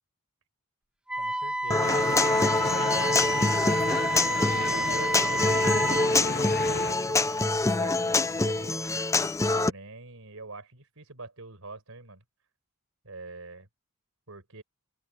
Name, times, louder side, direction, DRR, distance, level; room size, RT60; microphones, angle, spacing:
Wind instrument woodwind instrument, 1.1-6.1, right 1 dB, 5° right, 1.4 m, -29 dB
voice 1, 1.2-3.6 4.1-6.2 6.5-8.8 9.5-12.2 13.0-13.7 14.3-14.6, right 3 dB, 70° right, 4.9 m, -44 dB
Human voice / Acoustic guitar, 1.7-9.7, left 2 dB, 15° left, 0.6 m, -25 dB
sound 1, 1.8-6.9, left 4 dB, 45° left, 1.1 m, -34 dB
open air
head